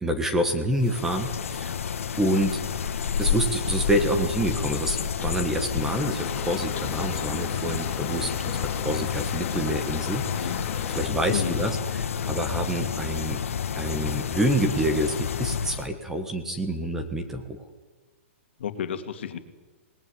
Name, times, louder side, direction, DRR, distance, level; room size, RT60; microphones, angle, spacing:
voice 1, 0.0-1.9 2.2-2.6 3.2-8.3 8.6-10.6 10.9-13.4 13.8-17.6, right 1 dB, 5° right, 7 dB, 1.4 m, -27 dB
sound 1, 0.8-15.9, left 7 dB, 85° left, 1.7 m, -30 dB
sound 2, 5.8-11.1, left 9 dB, 20° left, 2.4 m, -37 dB
voice 2, 10.3-10.7 11.3-11.7 18.6-19.4, left 8 dB, 60° left, 8 dB, 2.3 m, -32 dB
26.0 x 19.5 x 9.7 m, 1.3 s
hypercardioid pair, 175°, 7 cm